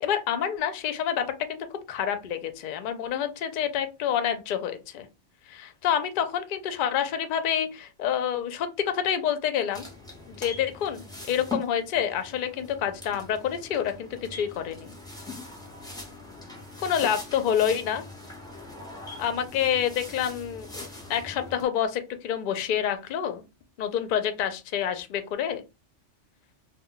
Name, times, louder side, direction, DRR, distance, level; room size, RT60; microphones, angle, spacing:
voice 1, 0.0-5.1 5.5-9.9 10.3-14.9 16.8-18.0 19.2-23.4 23.8-25.6, left 9 dB, 60° left, 9 dB, 0.5 m, -28 dB
sound 1, 9.7-21.6, left 2 dB, 5° left, 0.5 m, -41 dB
2.2 x 2.2 x 3.7 m, 0.27 s
omnidirectional pair, 1.2 m